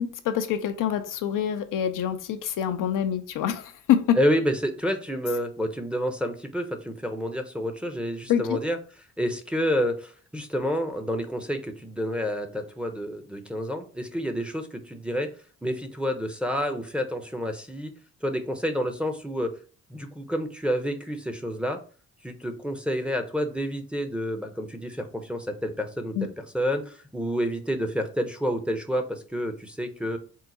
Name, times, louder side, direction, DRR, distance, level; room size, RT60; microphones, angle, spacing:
voice 1, 0.0-4.2 8.3-8.6 26.2-26.3, left 9 dB, 65° left, 0.5 m, -26 dB
voice 2, 4.2-8.8 9.2-15.3 15.6-17.9 18.2-19.5 19.9-21.8 22.2-30.2, equal, 5° right, 0.8 m, -29 dB
4.5 x 2.0 x 4.0 m
hypercardioid pair, 45°, 34 cm